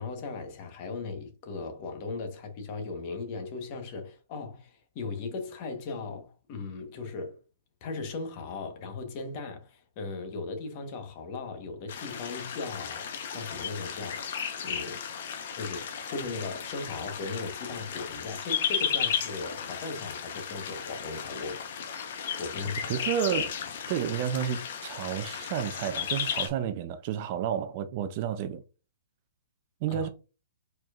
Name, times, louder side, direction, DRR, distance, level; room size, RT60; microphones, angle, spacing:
voice 1, 0.0-7.4 7.8-14.3 14.6-15.0 15.5-21.9 22.4-23.1 29.9-30.1, left 4 dB, 30° left, 1.1 m, -38 dB
sound 1, 11.9-26.5, left 7 dB, 50° left, 0.9 m, -34 dB
voice 2, 22.9-23.6 23.9-28.6 29.8-30.1, right 9 dB, 35° right, 0.4 m, -31 dB
4.5 x 4.4 x 2.5 m
hypercardioid pair, 160°, 0 cm